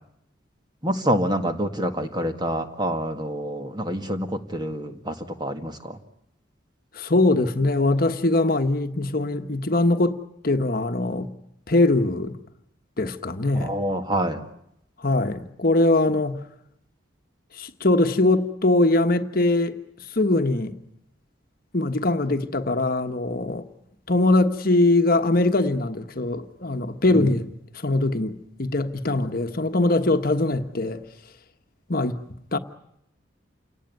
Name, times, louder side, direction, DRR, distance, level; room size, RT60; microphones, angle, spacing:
voice 1, 0.8-6.0 13.5-14.4 27.1-27.4, right 1 dB, 20° right, 1.9 m, -27 dB
voice 2, 6.9-11.3 11.7-12.4 13.0-13.8 15.0-16.4 17.6-19.8 20.1-20.7 21.7-23.6 24.1-27.5 27.8-28.3 28.6-31.0 31.9-32.2 32.5-32.6, left 2 dB, 50° left, 1.3 m, -22 dB
29.0 x 18.5 x 9.6 m
head